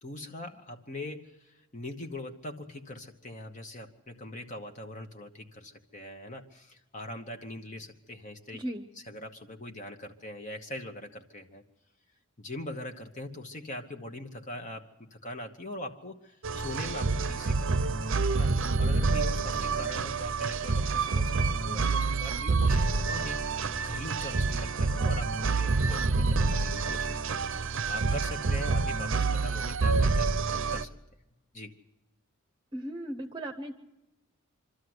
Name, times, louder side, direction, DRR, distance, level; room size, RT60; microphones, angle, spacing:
voice 1, 0.0-8.6 9.1-11.6 12.4-18.0 18.3-30.3 30.7-31.0 31.5-31.7, left 1 dB, 35° left, 4 dB, 1.2 m, -42 dB
voice 2, 8.5-8.9 32.7-33.7, right 1 dB, 20° right, 4 dB, 0.9 m, -36 dB
sound 1, 16.4-30.8, right 4 dB, 60° right, 0.7 m, -27 dB
25.5 x 13.0 x 7.9 m, 0.98 s
head